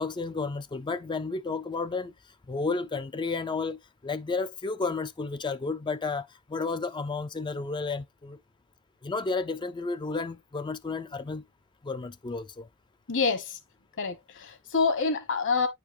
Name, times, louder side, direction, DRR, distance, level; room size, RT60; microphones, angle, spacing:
voice 1, 0.0-2.1 2.5-8.4 9.0-11.4 11.8-12.7, left 4 dB, 20° left, 0.4 m, -32 dB
voice 2, 13.1-13.6 14.0-15.7, left 4 dB, 60° left, 1.4 m, -27 dB
9.3 x 4.6 x 2.7 m
head